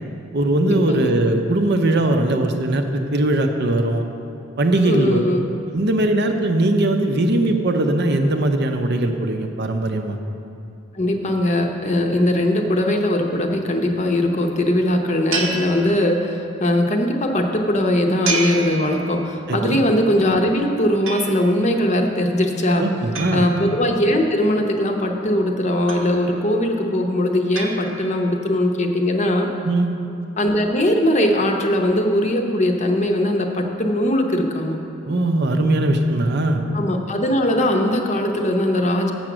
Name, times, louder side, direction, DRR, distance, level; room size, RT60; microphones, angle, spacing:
voice 1, 0.3-4.0 4.6-5.2 5.7-10.2 19.5-19.8 22.8-23.5 29.6-29.9 35.1-36.6, right 1 dB, 55° right, 5 dB, 0.6 m, -20 dB
voice 2, 4.9-5.5 10.9-22.9 23.3-29.5 30.4-34.8 36.7-39.1, left 1 dB, 35° left, 3 dB, 0.7 m, -20 dB
sound 1, 15.3-16.5 18.2-19.5 21.1-21.8 23.1-24.3 25.9-26.6 27.5-28.4, right 4 dB, 90° right, 1.0 m, -30 dB
7.6 x 7.1 x 6.0 m, 2.7 s
head